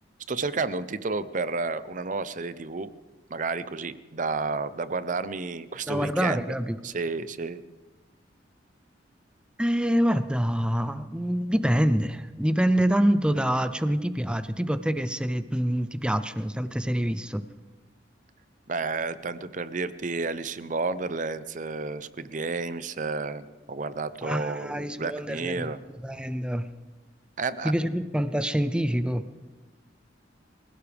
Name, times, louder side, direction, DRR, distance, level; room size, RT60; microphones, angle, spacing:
voice 1, 0.3-2.9 3.3-6.5 6.8-7.6 18.7-25.8 27.4-27.7, right 4 dB, 45° right, 14 dB, 0.7 m, -31 dB
voice 2, 5.9-6.8 9.6-17.4 24.2-25.7 26.0-26.7 27.6-29.2, equal, 5° right, 11 dB, 0.6 m, -26 dB
25.0 x 16.5 x 3.5 m, 1.3 s
head